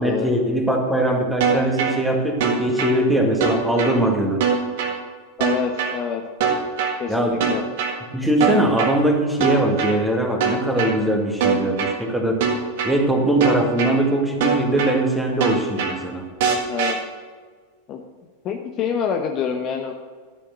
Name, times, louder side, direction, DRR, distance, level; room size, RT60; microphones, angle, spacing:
voice 1, 0.0-4.5 7.1-7.5 8.1-12.4 12.8-16.3, right 1 dB, 5° right, 2 dB, 1.9 m, -21 dB
sound 1, 1.4-1.9 2.4-2.9 3.4-3.9 4.4-4.9 5.4-5.9 6.4-6.9 7.4-7.9 8.4-8.9 9.4-9.9 10.4-10.9 11.4-11.9 12.4-12.9 13.4-13.9 14.4-14.9 15.4-15.9 16.4-16.9, right 6 dB, 50° right, 1.7 m, -21 dB
voice 2, 5.4-6.2 7.0-7.6 16.7-17.0 17.9-18.0 18.4-19.9, left 7 dB, 35° left, 4 dB, 1.0 m, -26 dB
12.0 x 7.0 x 6.4 m, 1.5 s
figure-of-eight pair, 90°, 0 cm